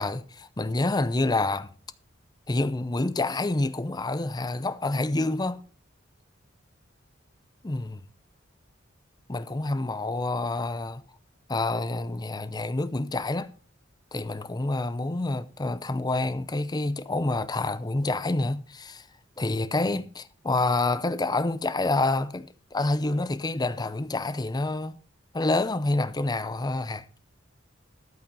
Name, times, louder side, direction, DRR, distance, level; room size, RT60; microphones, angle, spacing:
voice 1, 0.0-1.7 2.5-5.6 7.6-8.0 9.3-11.0 11.5-13.5 14.1-19.1 19.4-25.0 25.3-27.0, left 2 dB, 20° left, 0.6 m, -27 dB
13.0 x 5.7 x 5.4 m
head